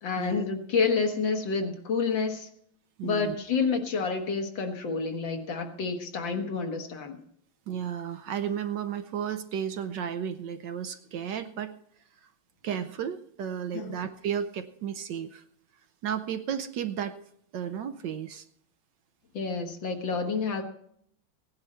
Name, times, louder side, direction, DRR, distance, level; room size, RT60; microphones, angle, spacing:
voice 1, 0.0-2.5 3.0-7.2 13.7-14.0 19.3-20.6, left 5 dB, 70° left, 4 dB, 2.1 m, -29 dB
voice 2, 3.0-3.4 7.7-11.7 12.2-12.3 12.6-15.4 16.0-17.1 17.5-18.4, right 8 dB, 70° right, 10 dB, 1.2 m, -33 dB
16.5 x 10.5 x 4.3 m, 0.67 s
omnidirectional pair, 2.2 m